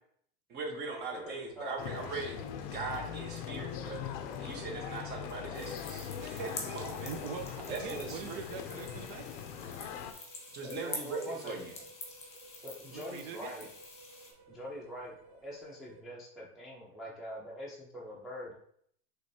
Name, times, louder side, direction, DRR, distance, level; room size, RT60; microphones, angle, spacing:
voice 1, 0.5-7.1 7.7-8.4 10.5-11.7, right 4 dB, 35° right, 2 dB, 1.1 m, -40 dB
voice 2, 1.1-1.8 7.9-8.1 10.6-11.5 12.6-13.7 14.5-18.5, equal, ahead, -7 dB, 0.7 m, -44 dB
sound 1, 1.1-16.0, right 3 dB, 85° right, 1.0 m, -59 dB
sound 2, 1.8-10.1, left 8 dB, 45° left, 0.5 m, -41 dB
sound 3, 5.5-14.3, left 3 dB, 20° left, 1.1 m, -47 dB
voice 3, 7.0-9.3 12.8-13.7, right 6 dB, 60° right, 7 dB, 0.6 m, -43 dB
5.0 x 3.2 x 2.7 m, 0.66 s
supercardioid pair, 135°, 31 cm